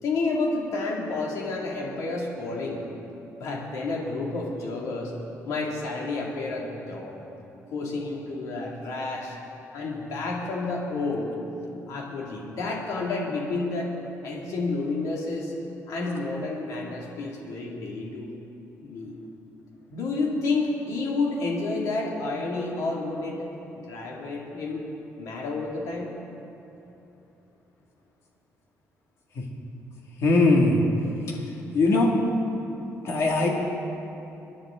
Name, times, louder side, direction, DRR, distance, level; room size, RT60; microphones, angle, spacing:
voice 1, 0.0-2.8 3.4-5.1 5.5-7.3 7.7-9.4 9.7-11.4 11.9-13.9 14.2-15.5 15.9-18.3 18.8-19.2 19.9-23.5 23.7-24.8 25.2-26.2, left 3 dB, 85° left, -2 dB, 2.3 m, -30 dB
voice 2, 30.2-30.8 31.3-32.2 33.0-33.5, left 2 dB, 60° left, -1 dB, 2.2 m, -21 dB
25.5 x 10.5 x 3.8 m, 3.0 s
cardioid pair, 165°, 5 cm